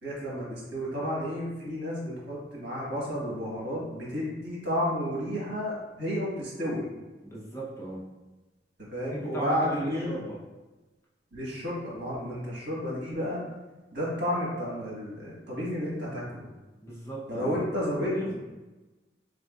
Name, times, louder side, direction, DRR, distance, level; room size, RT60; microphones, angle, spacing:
voice 1, 0.0-6.9 8.9-10.2 11.3-13.4 13.9-16.5 17.3-18.3, equal, 70° right, -5 dB, 1.5 m, -31 dB
voice 2, 7.2-8.0 9.1-10.4 16.8-17.6 18.0-18.3, right 1 dB, 15° left, -6 dB, 0.7 m, -37 dB
3.8 x 3.6 x 2.4 m, 1.1 s
head